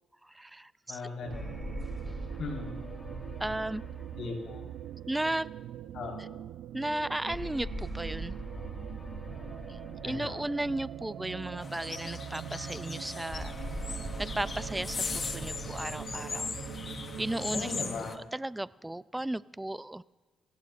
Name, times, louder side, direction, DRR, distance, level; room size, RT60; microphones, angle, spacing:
voice 1, 0.2-1.0 3.4-3.8 5.1-5.5 6.2-6.3 6.7-8.3 9.7-13.5 14.2-16.6 17.2-17.8 18.1-20.0, right 1 dB, 10° right, 18 dB, 0.4 m, -35 dB
voice 2, 0.9-1.6 2.4-2.8 4.2-4.6 5.9-6.3 10.0-10.4 17.5-18.2, left 3 dB, 65° left, 0 dB, 4.2 m, -38 dB
sound 1, 1.2-18.0, right 11 dB, 80° right, 0.4 m, -43 dB
sound 2, 1.3-5.9 7.3-11.7 13.3-17.9, equal, 20° left, 2.7 m, -42 dB
sound 3, 11.6-18.2, left 5 dB, 40° left, 0.8 m, -39 dB
24.5 x 16.5 x 2.5 m, 1.3 s
cardioid pair, 90°, 0 cm